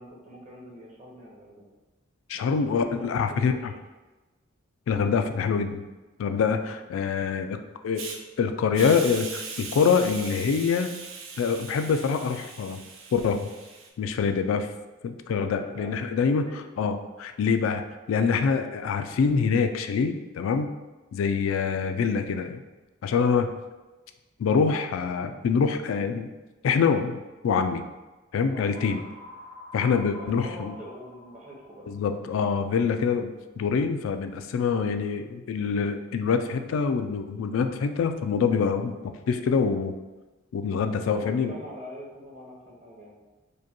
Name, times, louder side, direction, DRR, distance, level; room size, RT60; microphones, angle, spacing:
voice 1, 0.0-1.6 2.3-3.8 6.6-6.8 15.5-15.9 16.2-16.6 23.1-23.4 28.5-29.0 30.0-31.9 39.2-39.5 40.9-43.1, equal, 40° right, -4 dB, 1.0 m, -44 dB
voice 2, 2.3-3.5 4.9-5.8 6.2-7.6 7.8-8.1 8.4-10.9 11.4-12.8 13.1-13.5 14.0-14.7 15.0-16.5 16.8-17.8 18.1-20.7 21.1-22.6 23.0-23.5 24.4-26.3 26.6-27.2 27.4-27.8 28.3-29.0 29.7-30.7 31.9-39.0 39.3-39.9 40.5-41.5, left 5 dB, 85° left, 8 dB, 0.3 m, -25 dB
Hiss, 7.9-8.2 8.7-13.9, right 4 dB, 90° right, 0.5 m, -39 dB
sound 1, 28.7-32.6, left 2 dB, 65° right, 1.0 m, -47 dB
4.9 x 2.2 x 2.9 m, 1.1 s
head